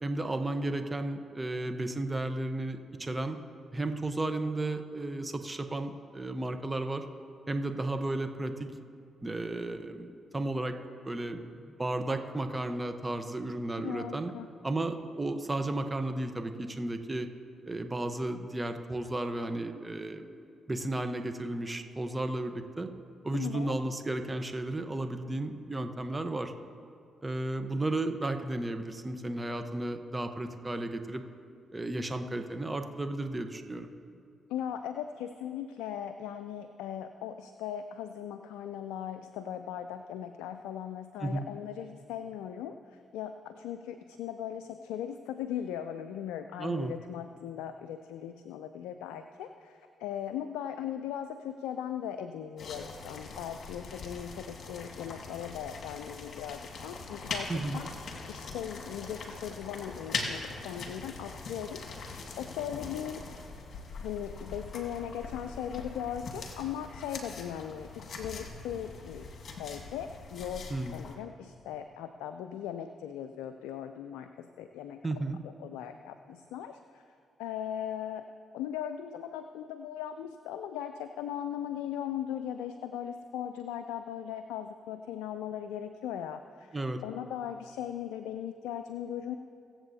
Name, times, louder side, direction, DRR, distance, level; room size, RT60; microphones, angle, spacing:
voice 1, 0.0-3.4 3.7-7.1 7.5-8.7 9.2-10.8 11.0-11.4 11.8-14.3 14.6-17.3 17.7-20.3 20.7-22.9 23.2-26.5 27.2-31.2 31.7-33.9 41.2-41.4 46.6-46.9 57.5-57.8 70.7-71.0 75.0-75.4 86.7-87.0, right 2 dB, 25° right, 7 dB, 0.9 m, -33 dB
voice 2, 13.8-14.5 23.3-23.8 34.5-57.9 58.3-63.3 64.0-75.0 75.4-77.0 77.4-78.2 78.5-89.3, left 9 dB, 80° left, 8 dB, 0.3 m, -39 dB
sound 1, 52.6-71.2, left 4 dB, 60° left, 1.6 m, -42 dB
22.5 x 7.6 x 2.8 m, 2.3 s
hypercardioid pair, 45°, 0 cm